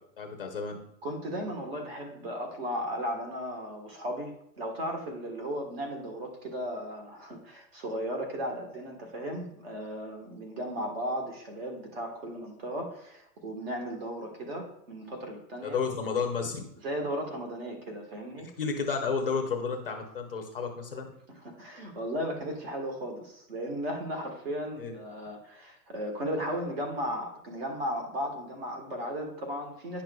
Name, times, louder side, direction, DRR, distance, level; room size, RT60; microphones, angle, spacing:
voice 1, 0.2-0.8 15.6-16.6 18.6-21.1 24.8-24.9, left 5 dB, 35° left, 3 dB, 0.6 m, -31 dB
voice 2, 1.0-15.8 16.8-18.5 21.4-30.0, equal, 40° right, 3 dB, 1.4 m, -35 dB
9.9 x 6.0 x 2.3 m, 0.75 s
hypercardioid pair, 175°, 48 cm